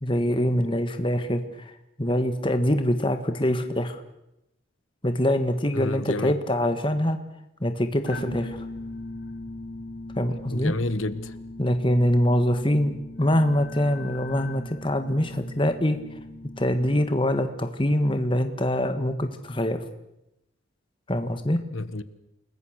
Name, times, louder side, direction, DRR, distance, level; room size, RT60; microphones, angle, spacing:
voice 1, 0.0-1.7 2.0-4.0 5.0-7.2 7.6-8.7 10.2-10.7 11.6-16.0 16.6-19.8 21.1-21.6, left 1 dB, 25° left, 1.7 m, -24 dB
voice 2, 5.7-6.3 10.5-11.3 21.7-22.0, left 2 dB, 85° left, 1.5 m, -30 dB
sound 1, 8.1-17.3, left 2 dB, 55° left, 5.4 m, -40 dB
29.5 x 21.0 x 6.6 m
head